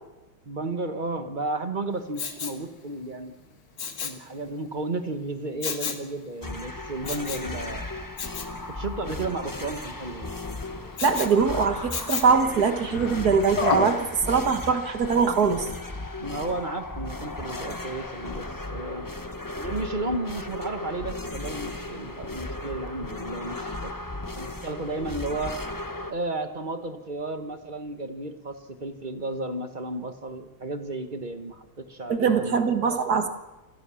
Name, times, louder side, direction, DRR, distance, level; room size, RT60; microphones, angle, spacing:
voice 1, 0.4-3.4 4.0-7.9 8.7-10.3 16.2-19.1 19.5-23.9 24.3-25.6 26.1-32.9, right 2 dB, 25° right, 8 dB, 1.2 m, -33 dB
Respiratory sounds, 2.1-2.6 3.8-4.2 5.6-6.1 7.0-7.5 8.2-8.5 11.0-11.3 11.9-12.4 13.6-14.0 14.5-14.6, left 6 dB, 60° left, 2.3 m, -30 dB
sound 1, 6.4-26.1, left 2 dB, 25° left, 0.4 m, -36 dB
Sliding door, 9.8-14.5, left 2 dB, 85° left, 2.8 m, -44 dB
voice 2, 11.0-15.7 32.1-33.3, right 5 dB, 50° right, 7 dB, 1.9 m, -22 dB
26.5 x 15.5 x 7.1 m, 1.1 s
omnidirectional pair, 2.3 m